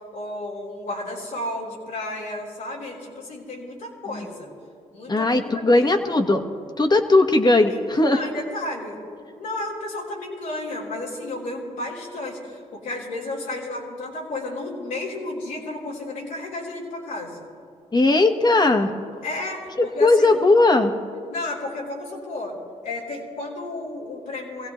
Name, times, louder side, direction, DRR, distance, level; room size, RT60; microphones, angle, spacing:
voice 1, 0.1-4.5 4.9-5.9 7.7-9.0 9.4-17.5 19.2-20.4 21.3-22.6 22.8-24.7, left 2 dB, 90° left, -5 dB, 3.4 m, -32 dB
voice 2, 5.1-6.4 6.8-8.2 17.9-18.9 19.8-20.9, left 2 dB, 30° left, 6 dB, 1.3 m, -18 dB
22.0 x 16.5 x 3.1 m, 2.3 s
cardioid pair, 60°, 14 cm